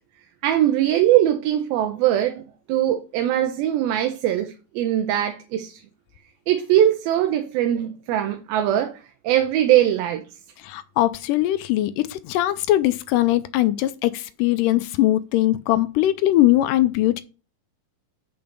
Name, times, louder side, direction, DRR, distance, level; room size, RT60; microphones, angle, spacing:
voice 1, 0.4-2.4 2.7-5.8 6.5-8.9 9.2-10.2, right 12 dB, 85° right, 2.7 m, -21 dB
voice 2, 10.6-17.2, left 15 dB, 80° left, 2.0 m, -21 dB
6.9 x 5.2 x 6.7 m
omnidirectional pair, 4.1 m